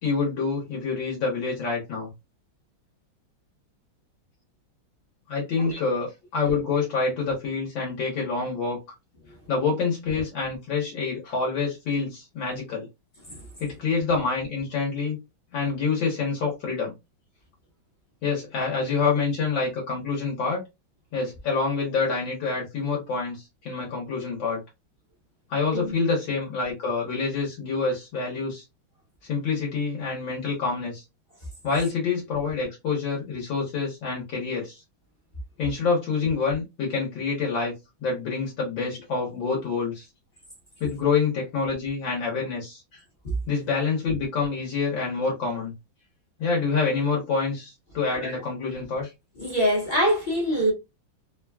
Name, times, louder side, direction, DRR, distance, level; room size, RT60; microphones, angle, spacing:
voice 1, 0.0-2.1 5.3-8.8 9.5-12.9 13.6-15.2 15.5-16.9 18.2-20.6 21.1-24.6 25.5-28.6 29.2-31.0 31.6-34.8 35.6-37.7 38.0-40.1 40.8-43.0 43.5-45.7 46.4-49.1, left 4 dB, 70° left, 1.7 m, -27 dB
voice 2, 49.4-50.7, equal, 35° left, 0.8 m, -25 dB
3.8 x 2.2 x 2.2 m
omnidirectional pair, 2.2 m